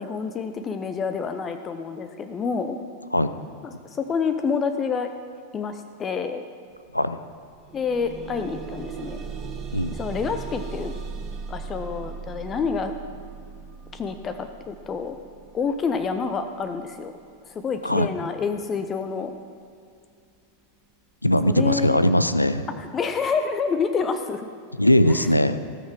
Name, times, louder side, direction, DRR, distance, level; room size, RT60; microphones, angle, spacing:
voice 1, 0.0-2.8 3.6-5.1 5.5-6.4 7.7-9.2 9.9-10.9 11.5-12.9 13.9-15.2 15.5-17.1 17.4-19.3 21.5-22.0 22.8-24.5 25.1-25.2, left 5 dB, 25° left, 8 dB, 0.7 m, -28 dB
sound 1, 6.7-6.9 7.2-18.2 19.0-19.1 19.6-19.7, right 5 dB, 30° right, 1.6 m, -38 dB
voice 2, 21.2-22.6 24.8-25.6, left 1 dB, 85° left, 12 dB, 0.5 m, -20 dB
17.0 x 6.5 x 6.1 m, 2.4 s
figure-of-eight pair, 90°, 0 cm